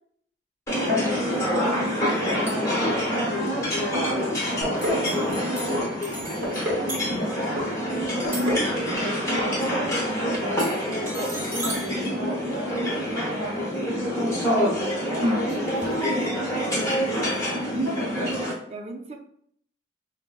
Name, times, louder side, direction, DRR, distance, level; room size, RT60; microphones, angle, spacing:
voice 1, 0.7-3.7 4.5-5.3 5.5-6.9 7.6-9.8 10.7-13.0 14.9-17.0, equal, 60° left, -1 dB, 0.5 m, -39 dB
sound 1, 0.7-18.5, equal, 15° left, 0.9 m, -26 dB
sound 2, 2.4-2.8 4.3-4.5 4.8-9.3 10.6-13.1 15.5-16.1, right 1 dB, 10° right, 0.9 m, -39 dB
voice 2, 4.6-5.5 14.9-15.2 18.3-19.2, right 2 dB, 35° right, 3 dB, 0.4 m, -37 dB
sound 3, 4.6-5.0 5.3-5.9 6.2-6.9 7.1-7.7 8.0-8.7 8.9-9.1 9.4-9.5 9.8-9.9, left 1 dB, 85° right, 0.7 m, -30 dB
4.6 x 2.1 x 2.2 m, 0.66 s
head